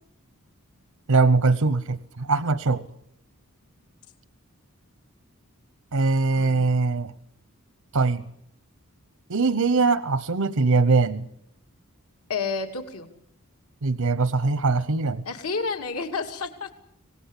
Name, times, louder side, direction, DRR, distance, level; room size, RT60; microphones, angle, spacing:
voice 1, 1.1-2.9 5.9-7.1 7.9-8.2 9.3-11.3 13.8-15.2, right 3 dB, 80° right, 16 dB, 0.9 m, -22 dB
voice 2, 6.3-6.6 12.3-13.1 15.2-16.7, left 4 dB, 80° left, 5 dB, 2.7 m, -30 dB
25.0 x 19.0 x 8.3 m, 0.73 s
head